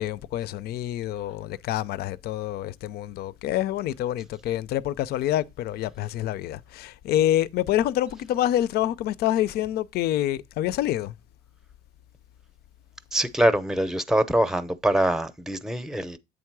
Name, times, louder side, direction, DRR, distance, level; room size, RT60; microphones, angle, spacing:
voice 1, 0.0-11.1, left 13 dB, 70° left, 0.5 m, -27 dB
voice 2, 13.1-16.2, right 1 dB, 5° right, 0.6 m, -24 dB
8.2 x 3.6 x 4.6 m
cardioid pair, 110°, 17 cm